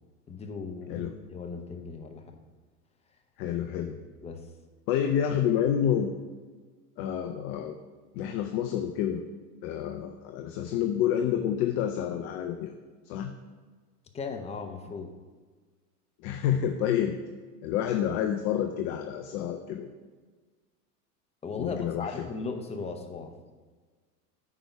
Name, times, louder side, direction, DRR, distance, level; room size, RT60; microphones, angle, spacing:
voice 1, 0.3-2.2 4.2-4.4 14.1-15.1 21.4-23.3, left 4 dB, 15° left, 4 dB, 0.8 m, -37 dB
voice 2, 3.4-4.0 4.9-6.1 7.0-7.7 8.1-9.2 9.6-12.7 13.1-13.3 16.2-17.2 17.6-19.9 21.6-22.3, left 9 dB, 30° left, 6 dB, 0.3 m, -28 dB
8.7 x 4.7 x 5.4 m, 1.4 s
hypercardioid pair, 110°, 48 cm